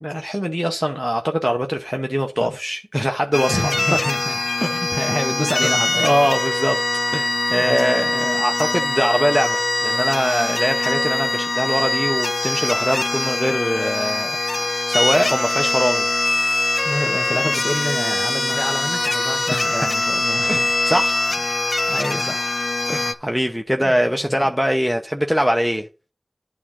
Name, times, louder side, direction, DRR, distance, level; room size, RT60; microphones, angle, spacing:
voice 1, 0.0-3.7 4.6-4.8 5.6-6.8 7.1-14.4 14.9-16.1 19.5-19.9 20.5-20.6 20.8-21.3 22.9-25.9, equal, ahead, 0.8 m, -22 dB
sound 1, 3.3-23.1, left 2 dB, 80° left, 0.7 m, -22 dB
voice 2, 3.5-4.3 4.7-6.1 7.5-7.8 16.8-20.7 21.5-21.6 21.9-22.6 23.8-24.0 24.3-24.5, left 1 dB, 25° left, 1.4 m, -27 dB
9.5 x 3.7 x 6.1 m
wide cardioid pair, 60°, 0 cm